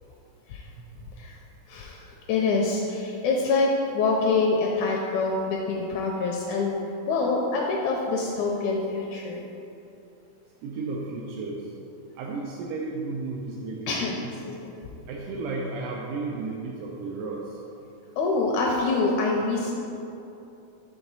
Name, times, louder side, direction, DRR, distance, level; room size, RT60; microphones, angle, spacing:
voice 1, 1.7-6.8 7.1-9.4 13.9-14.2 14.6-14.7 18.2-19.7, left 3 dB, 80° left, -1 dB, 1.7 m, -25 dB
voice 2, 10.6-11.6 12.2-14.3 15.1-17.4, right 3 dB, 80° right, -3 dB, 2.1 m, -33 dB
6.0 x 3.8 x 5.4 m, 2.9 s
omnidirectional pair, 3.7 m